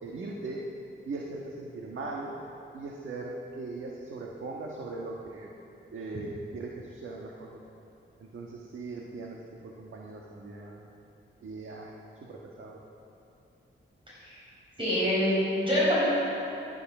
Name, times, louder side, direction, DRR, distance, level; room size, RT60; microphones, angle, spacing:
voice 1, 0.0-0.7 1.0-2.3 2.7-5.5 5.9-7.6 8.2-10.9 11.4-12.8, right 3 dB, 80° right, -2 dB, 1.5 m, -39 dB
voice 2, 14.8-16.1, equal, 25° right, -8 dB, 4.9 m, -25 dB
19.0 x 11.5 x 6.1 m, 2.9 s
wide cardioid pair, 160°, 20 cm